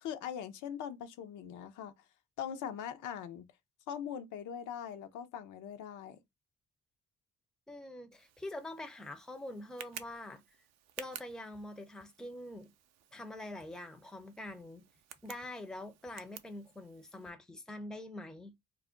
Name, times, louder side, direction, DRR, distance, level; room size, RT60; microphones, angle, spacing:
voice 1, 0.0-1.9 2.4-3.5 3.9-6.2, left 8 dB, 80° left, 0.6 m, -41 dB
voice 2, 7.7-10.6 11.0-12.7 13.1-14.9 15.2-18.5, left 1 dB, ahead, 0.5 m, -45 dB
Tick, 8.1-17.3, right 10 dB, 60° right, 0.5 m, -53 dB
2.4 x 2.1 x 3.6 m
cardioid pair, 90°, 30 cm